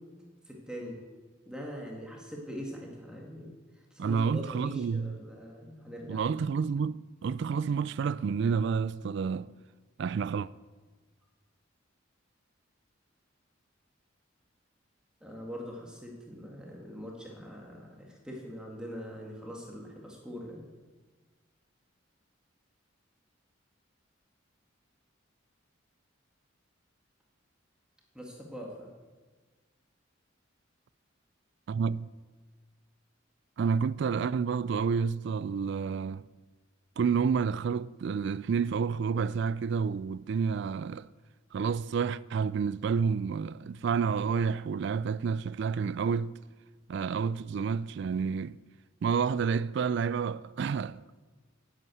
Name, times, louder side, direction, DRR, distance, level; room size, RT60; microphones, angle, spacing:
voice 1, 0.5-1.0 1.5-3.5 3.9-6.2 15.2-20.6 28.1-28.9, equal, 5° right, 1.9 m, -42 dB
voice 2, 4.0-5.2 6.1-9.5 10.0-10.5 31.7-32.1 33.6-36.2 37.0-41.1 41.5-46.3 46.9-48.6 49.0-51.1, right 6 dB, 60° right, 0.3 m, -29 dB
11.0 x 8.4 x 9.2 m
head